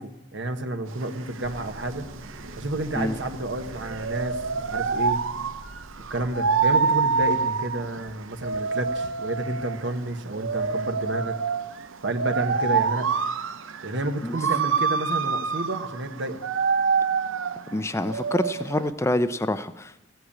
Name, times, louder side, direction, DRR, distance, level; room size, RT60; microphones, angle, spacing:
voice 1, 0.0-2.1 2.6-5.2 6.1-11.4 12.0-13.1 13.8-16.4, right 1 dB, 65° right, 7 dB, 1.2 m, -30 dB
sound 1, 0.9-18.9, right 5 dB, 80° right, 0.7 m, -27 dB
sound 2, 1.4-7.4, right 1 dB, 40° right, 1.0 m, -45 dB
voice 2, 17.7-20.0, left 1 dB, 15° left, 12 dB, 0.6 m, -26 dB
16.5 x 8.0 x 8.6 m, 0.93 s
head